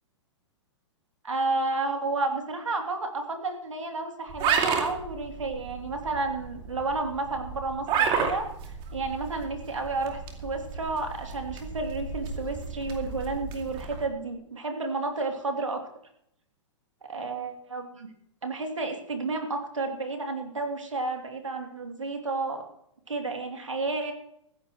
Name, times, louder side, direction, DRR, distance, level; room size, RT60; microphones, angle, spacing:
voice 1, 1.2-8.5 8.9-15.8 17.1-18.1 18.4-22.6 23.1-24.1, right 3 dB, 85° right, 3 dB, 3.0 m, -31 dB
sound 1, 4.3-14.1, right 6 dB, 35° right, 2.5 m, -32 dB
17.0 x 15.0 x 3.1 m, 0.73 s
hypercardioid pair, 115°, 16 cm